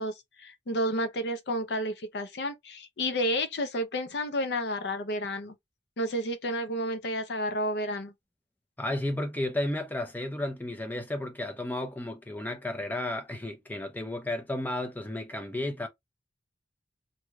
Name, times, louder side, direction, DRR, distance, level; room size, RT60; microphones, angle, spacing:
voice 1, 0.0-5.6 6.0-8.1, equal, 65° left, 0.6 m, -31 dB
voice 2, 8.8-15.9, left 1 dB, 10° left, 0.6 m, -33 dB
3.1 x 2.7 x 2.3 m
head